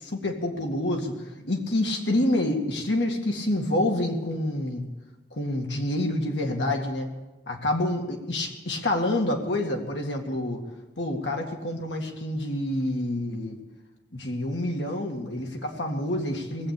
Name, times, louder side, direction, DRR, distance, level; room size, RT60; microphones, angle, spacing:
voice 1, 0.0-4.9 5.3-7.1 7.5-10.6 11.0-13.6 14.1-16.7, left 1 dB, 85° left, 2 dB, 2.2 m, -27 dB
18.5 x 8.2 x 8.7 m, 1.1 s
head